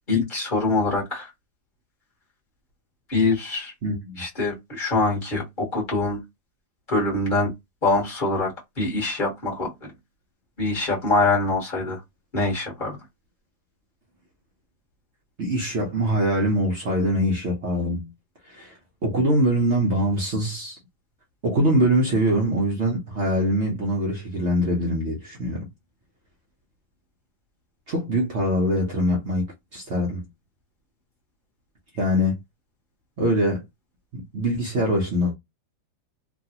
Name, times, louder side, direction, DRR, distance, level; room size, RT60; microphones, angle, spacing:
voice 1, 0.1-1.3 3.1-3.7 4.2-6.2 6.9-7.5 7.8-9.9 10.6-12.0 12.3-13.0, left 3 dB, 30° left, 1.1 m, -24 dB
voice 2, 3.8-4.2 15.4-18.1 18.5-18.7 19.0-20.8 21.4-25.7 27.9-30.2 31.9-32.4 33.2-33.6 34.1-35.3, equal, 55° right, 0.7 m, -23 dB
3.2 x 2.3 x 2.8 m
omnidirectional pair, 2.1 m